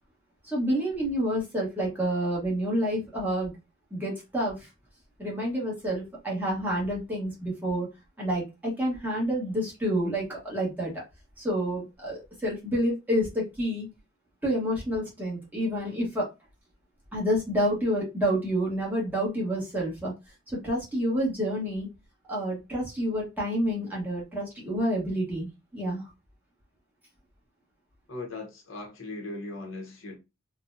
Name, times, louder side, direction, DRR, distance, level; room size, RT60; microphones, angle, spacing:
voice 1, 0.5-3.5 3.9-4.7 5.2-7.9 8.2-11.0 11.4-13.9 14.4-16.3 17.1-20.1 20.5-21.9 22.3-26.0, equal, 10° right, 1.2 m, -28 dB
voice 2, 28.1-30.2, left 2 dB, 65° left, 0.9 m, -38 dB
3.7 x 2.2 x 2.6 m
head